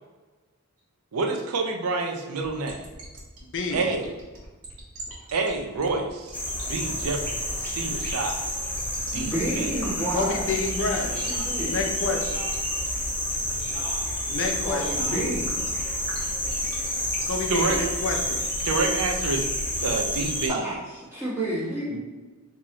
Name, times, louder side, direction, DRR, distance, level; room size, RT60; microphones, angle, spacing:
voice 1, 1.1-2.9 3.7-4.1 5.3-6.4 6.7-8.5 9.1-9.7 17.5-17.8 18.6-19.5 19.8-20.7 21.9-22.0, right 3 dB, 85° right, 4 dB, 0.5 m, -28 dB
sound 1, 2.4-18.9, right 2 dB, 65° right, 0.9 m, -43 dB
voice 2, 3.5-3.9 10.1-11.1 11.7-12.2 14.3-15.4 17.3-18.4, left 3 dB, 55° left, 2 dB, 0.6 m, -28 dB
sound 2, 6.3-20.5, equal, 10° left, 0.5 m, -29 dB
voice 3, 8.8-10.6 11.3-11.8 14.4-15.7 20.5-21.9, right 1 dB, 10° right, -10 dB, 1.4 m, -31 dB
voice 4, 11.0-12.5 13.4-14.1 14.7-15.3, equal, 35° right, -7 dB, 0.8 m, -43 dB
3.1 x 2.9 x 3.7 m, 1.3 s
head